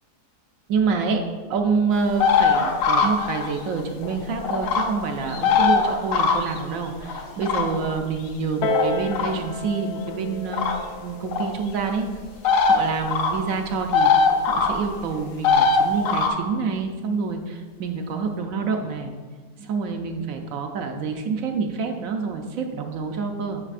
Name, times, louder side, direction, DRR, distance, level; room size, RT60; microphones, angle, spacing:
voice 1, 0.7-1.2 1.5-10.6 10.9-12.1 12.6-19.1 19.6-23.6, right 5 dB, 65° right, 4 dB, 0.9 m, -27 dB
sound 1, 2.2-4.9 5.3-6.6 7.0-7.9 8.7-9.3 10.5-10.8 11.3-11.5 12.4-12.8 13.1-13.3 13.6-14.7 15.4-16.3, left 5 dB, 80° left, 1.3 m, -20 dB
Piano, 8.6-13.8 14.6-14.7, left 2 dB, 60° left, 0.7 m, -32 dB
9.7 x 5.4 x 2.5 m, 1.4 s
omnidirectional pair, 1.7 m